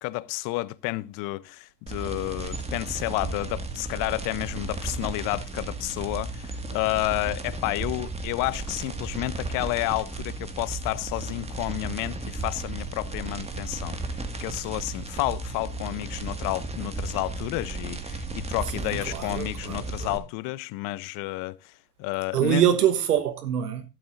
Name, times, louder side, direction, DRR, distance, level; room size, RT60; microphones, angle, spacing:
voice 1, 0.0-21.7 22.0-22.6, left 20 dB, 45° left, 0.7 m, -31 dB
sound 1, 1.9-20.2, right 3 dB, 15° right, 1.8 m, -34 dB
voice 2, 18.7-20.2 22.3-23.8, right 10 dB, 85° right, 1.3 m, -25 dB
12.5 x 12.0 x 2.6 m
hypercardioid pair, 90°, 46 cm